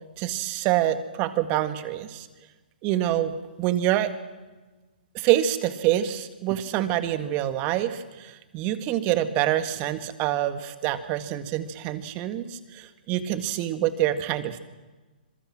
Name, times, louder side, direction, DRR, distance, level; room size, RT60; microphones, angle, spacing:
voice 1, 0.2-2.3 2.8-3.3 3.6-4.1 5.1-14.7, right 13 dB, 30° right, 11 dB, 1.8 m, -26 dB
26.0 x 23.0 x 6.1 m, 1.2 s
hypercardioid pair, 130°, 5 cm